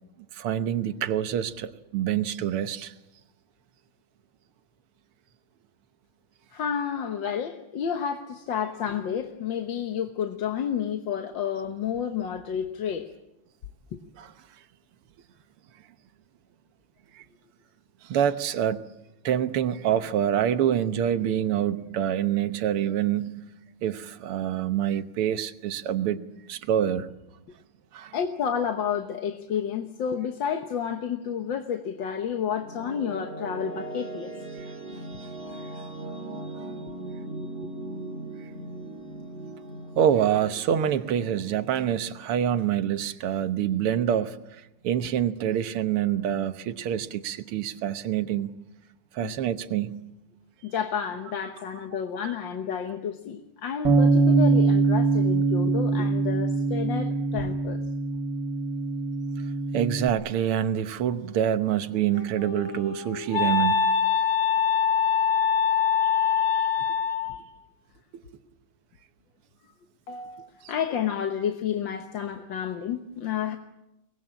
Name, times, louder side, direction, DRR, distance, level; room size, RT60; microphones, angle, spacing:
voice 1, 0.3-2.9 14.2-14.3 17.1-17.2 18.0-18.9 19.2-23.4 23.8-27.1 27.9-28.2 34.6-34.7 40.0-48.5 49.1-50.0 51.9-52.3 59.7-63.8 68.1-68.2 70.6-70.7, right 10 dB, 90° right, 11 dB, 1.9 m, -26 dB
voice 2, 6.5-13.1 13.9-14.0 28.1-34.3 36.9-37.0 49.2-49.3 50.6-57.8 70.1-73.6, left 8 dB, 65° left, 6 dB, 1.8 m, -30 dB
sound 1, 32.0-43.1, right 2 dB, 30° right, 2.5 m, -39 dB
Bass guitar, 53.8-60.1, right 3 dB, 55° right, 2.3 m, -23 dB
Wind instrument woodwind instrument, 61.9-67.4, left 7 dB, 35° left, 5.2 m, -24 dB
24.0 x 20.0 x 8.8 m, 0.95 s
omnidirectional pair, 2.4 m